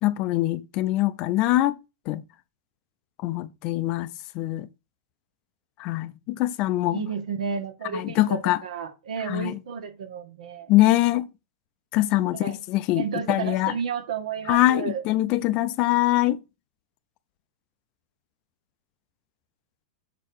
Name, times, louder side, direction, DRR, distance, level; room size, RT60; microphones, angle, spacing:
voice 1, 0.0-1.8 2.1-2.2 3.2-4.7 5.8-7.0 7.9-8.6 9.3-9.6 10.7-11.3 11.9-13.7 14.5-16.4, left 16 dB, 25° left, 0.4 m, -23 dB
voice 2, 6.9-10.7 12.3-12.6 12.9-15.0, right 6 dB, 85° right, 1.9 m, -32 dB
6.8 x 4.4 x 6.4 m
supercardioid pair, 175°, 4 cm